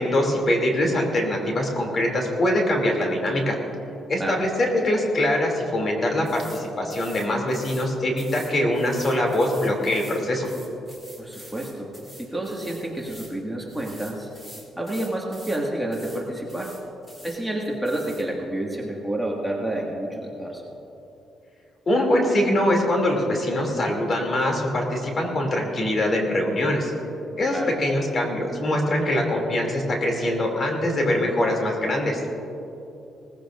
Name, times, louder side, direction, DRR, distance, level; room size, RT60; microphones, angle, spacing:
voice 1, 0.0-3.5 4.1-10.5 21.9-26.9 27.4-32.2, left 1 dB, 40° left, 1 dB, 2.8 m, -23 dB
sound 1, 6.3-6.6 6.9-7.9 8.2-13.4 13.7-15.6 15.9-16.2 16.5-17.4 17.9-18.2, equal, 20° left, 3.5 m, -46 dB
voice 2, 11.2-11.9 12.2-14.3 14.7-16.7 17.2-20.6 27.5-27.7, right 1 dB, ahead, -3 dB, 1.9 m, -29 dB
19.5 x 15.0 x 2.6 m, 2.9 s
cardioid pair, 90°, 0 cm